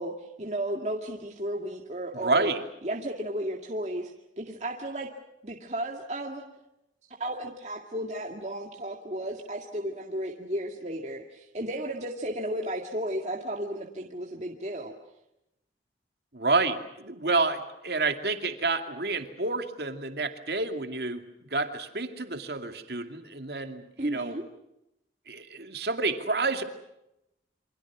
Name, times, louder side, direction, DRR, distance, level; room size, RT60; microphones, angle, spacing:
voice 1, 0.0-2.5 2.8-4.1 4.4-5.1 5.4-6.4 7.2-14.9 24.0-24.4, right 1 dB, 40° right, 0 dB, 2.1 m, -34 dB
voice 2, 2.1-2.6 16.3-21.2 21.5-24.4 25.3-26.6, right 3 dB, 65° right, 6 dB, 2.5 m, -29 dB
28.5 x 25.5 x 6.1 m, 0.87 s
head